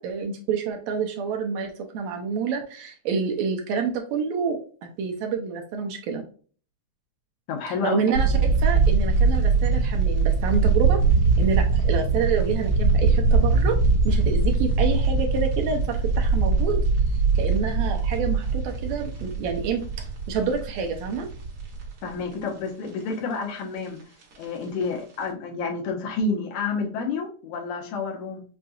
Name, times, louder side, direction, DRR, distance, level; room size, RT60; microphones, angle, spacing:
voice 1, 0.0-4.6 5.0-6.2 7.7-11.0 11.4-13.8 14.1-16.8 17.4-21.3, right 6 dB, 75° right, 3 dB, 1.9 m, -28 dB
voice 2, 7.5-8.0 22.0-24.0 24.4-28.4, left 4 dB, 85° left, 1 dB, 2.4 m, -29 dB
sound 1, 8.1-22.2 22.6-22.7 22.8-23.1 24.0-24.4 24.8-24.9 25.2-25.3, right 4 dB, 55° right, 2.0 m, -22 dB
5.7 x 2.6 x 2.3 m, 0.42 s
omnidirectional pair, 3.4 m